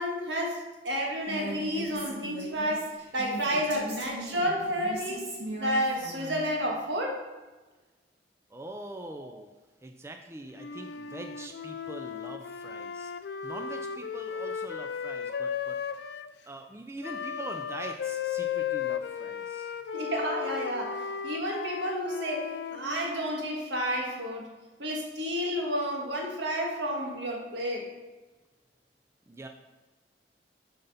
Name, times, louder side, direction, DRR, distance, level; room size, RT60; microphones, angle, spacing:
voice 1, 0.0-5.2 5.6-7.2 9.2-9.3 19.9-24.5 24.8-27.9, equal, 80° right, 0 dB, 1.6 m, -31 dB
Female speech woman speaking, 1.3-6.4, right 2 dB, 60° right, 2.4 m, -39 dB
voice 2, 8.5-9.5 9.8-13.1 13.4-15.8 16.5-19.7 29.3-29.5, right 2 dB, 15° right, 4 dB, 0.4 m, -43 dB
Wind instrument woodwind instrument, 10.6-16.3 17.0-23.5, left 7 dB, 65° left, 0.3 m, -35 dB
7.7 x 3.9 x 5.6 m, 1.2 s
head